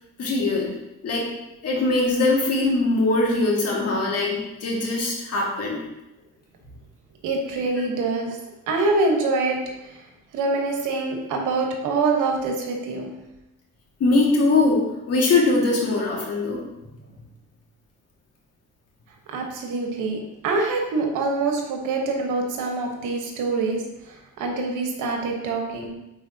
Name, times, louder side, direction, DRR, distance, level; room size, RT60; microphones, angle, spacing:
voice 1, 0.2-0.7 1.0-1.3 1.6-5.8 14.0-16.6, left 2 dB, 55° left, -2 dB, 2.0 m, -21 dB
voice 2, 7.2-8.4 8.7-9.6 10.3-13.2 19.3-23.8 24.4-25.9, right 3 dB, 90° right, 2 dB, 1.2 m, -25 dB
8.9 x 4.2 x 2.8 m, 0.94 s
cardioid pair, 90°, 30 cm